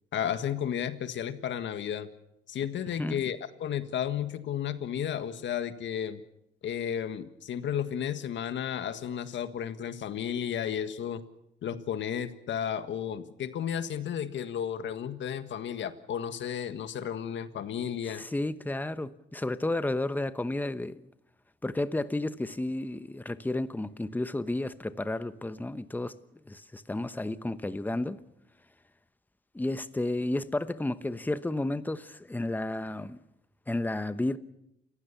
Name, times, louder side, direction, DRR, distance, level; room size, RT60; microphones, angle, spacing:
voice 1, 0.1-2.1 2.5-6.2 6.6-11.2 11.6-18.2, left 9 dB, 70° left, 1.7 m, -33 dB
voice 2, 18.1-21.1 21.6-26.1 26.5-28.2 29.5-33.2 33.7-34.4, left 2 dB, 10° left, 1.0 m, -32 dB
28.5 x 15.5 x 7.1 m
cardioid pair, 90°, 20 cm